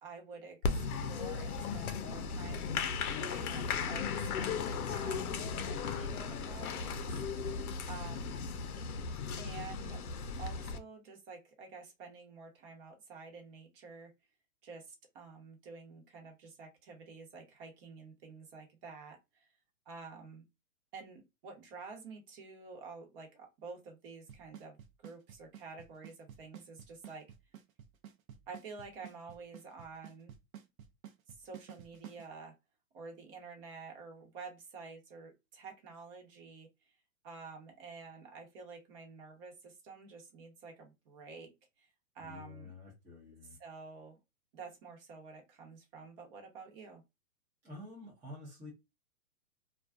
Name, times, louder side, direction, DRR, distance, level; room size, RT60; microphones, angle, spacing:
voice 1, 0.0-2.9 3.2-7.1 7.9-8.4 9.4-10.0 10.4-14.1 14.6-19.5 19.9-20.4 20.9-27.3 28.5-30.3 31.3-32.5 32.9-36.9 37.2-41.5 41.8-41.9 42.1-42.7 43.6-44.2 44.5-47.0, right 4 dB, 40° right, 1.0 m, -50 dB
Applause, 0.6-10.8, left 5 dB, 80° left, 0.6 m, -36 dB
Drum kit / Snare drum / Bass drum, 24.3-32.2, right 10 dB, 70° right, 0.7 m, -50 dB
voice 2, 42.2-43.6 47.6-48.7, left 2 dB, 5° right, 0.5 m, -49 dB
2.3 x 2.3 x 2.3 m
hypercardioid pair, 130°, 43 cm